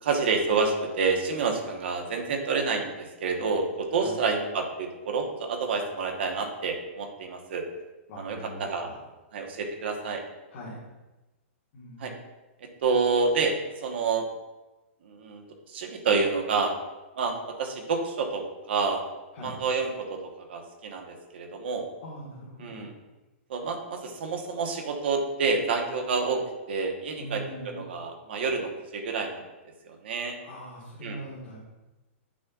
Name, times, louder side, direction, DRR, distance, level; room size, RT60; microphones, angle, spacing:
voice 1, 0.0-7.7 8.2-8.9 9.3-10.2 12.0-12.1 12.8-14.2 15.0-16.7 17.2-19.0 19.4-21.8 22.6-22.9 23.5-26.4 26.7-29.4 29.8-30.4 31.0-31.2, right 4 dB, 50° right, 2 dB, 1.1 m, -28 dB
voice 2, 8.1-8.9 10.5-10.8 11.7-12.1 19.3-19.6 22.0-22.9 27.2-27.8 30.4-31.6, equal, 35° left, -8 dB, 1.6 m, -41 dB
8.5 x 6.2 x 2.4 m, 1.1 s
hypercardioid pair, 180°, 7 cm